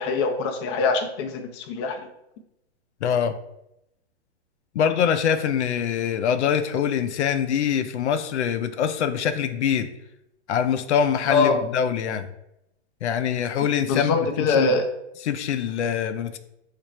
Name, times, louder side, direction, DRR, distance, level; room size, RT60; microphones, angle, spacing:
voice 1, 0.0-2.0 11.3-11.6 13.9-14.9, left 4 dB, 25° left, 5 dB, 0.3 m, -23 dB
voice 2, 3.0-3.4 4.7-9.9 10.5-12.3 13.0-14.7 15.2-16.4, left 8 dB, 85° left, 10 dB, 0.5 m, -24 dB
3.1 x 2.5 x 4.1 m, 0.83 s
hypercardioid pair, 135°, 33 cm